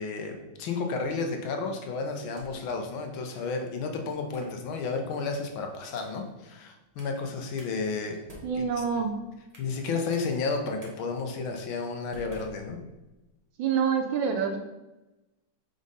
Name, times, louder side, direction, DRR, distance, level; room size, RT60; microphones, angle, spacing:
voice 1, 0.0-8.2 8.6-8.7 9.6-12.8, left 4 dB, 75° left, 4 dB, 1.5 m, -32 dB
sound 1, 2.1-2.7 3.3-3.6 4.3-4.6 5.1-5.4 5.9-6.3 7.0-7.2 7.6-7.7 8.1-9.8 10.1-10.3 10.8-10.9 11.4-11.6 12.1-13.2, right 1 dB, 30° right, 0.7 m, -51 dB
voice 2, 8.4-9.2 13.6-14.6, right 6 dB, 75° right, 6 dB, 1.1 m, -26 dB
5.2 x 3.8 x 5.2 m, 1.0 s
omnidirectional pair, 2.3 m